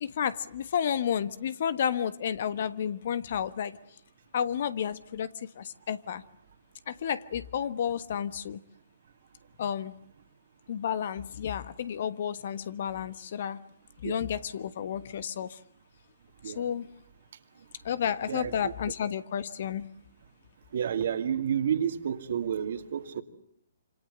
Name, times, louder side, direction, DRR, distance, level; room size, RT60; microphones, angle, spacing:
voice 1, 0.0-3.8 4.3-6.2 6.9-8.6 9.6-9.9 10.7-13.6 14.0-15.6 16.4-16.9 17.8-19.9, left 8 dB, 55° left, 15 dB, 1.4 m, -31 dB
voice 2, 18.3-18.7 20.7-23.2, right 8 dB, 60° right, 8 dB, 2.5 m, -30 dB
27.0 x 26.0 x 8.1 m, 0.70 s
hypercardioid pair, 135°, 0 cm